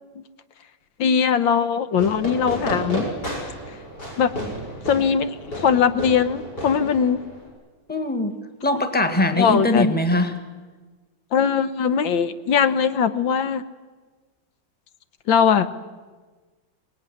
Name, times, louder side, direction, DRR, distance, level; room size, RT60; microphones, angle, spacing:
voice 1, 1.0-3.0 4.2-4.3 4.9-7.2 9.4-9.9 11.3-13.6 15.3-15.7, left 7 dB, 80° left, 12 dB, 1.8 m, -20 dB
Fireworks, 1.9-7.5, equal, 55° left, 7.2 m, -32 dB
voice 2, 7.9-10.4, left 1 dB, 5° left, 6 dB, 1.6 m, -22 dB
24.5 x 19.5 x 9.9 m, 1.4 s
omnidirectional pair, 2.1 m